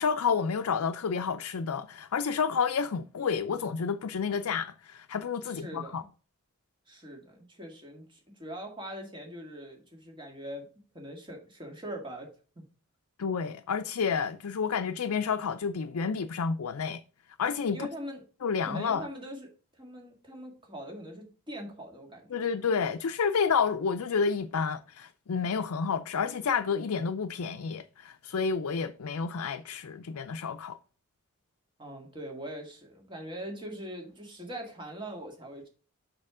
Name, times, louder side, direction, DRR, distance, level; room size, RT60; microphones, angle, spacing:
voice 1, 0.0-6.0 13.2-17.0 17.4-17.9 18.4-19.1 22.3-30.8, left 6 dB, 85° left, 0.5 m, -30 dB
voice 2, 5.4-6.1 6.9-10.7 10.9-12.6 17.7-18.2 18.6-22.4 31.8-35.7, equal, 20° right, 1.9 m, -42 dB
6.5 x 6.4 x 3.7 m
head